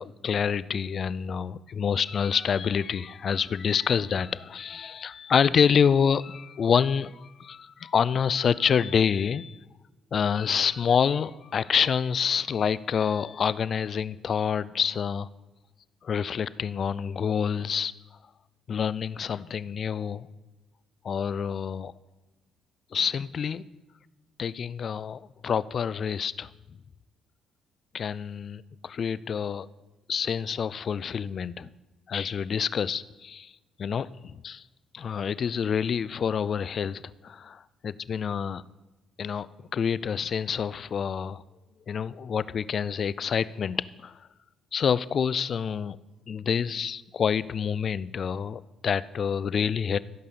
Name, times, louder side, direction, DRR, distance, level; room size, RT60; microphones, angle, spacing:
voice 1, 0.0-9.6 10.1-15.3 16.0-17.9 18.7-20.3 21.0-21.9 22.9-23.6 24.4-26.5 27.9-29.7 30.1-31.7 32.1-33.5 33.8-34.6 34.9-38.6 39.2-39.5 39.7-41.4 41.9-44.1 44.7-46.0 46.3-50.0, left 7 dB, 50° left, 18 dB, 0.4 m, -27 dB
15.0 x 5.6 x 6.9 m, 1.1 s
cardioid pair, 80°, 0 cm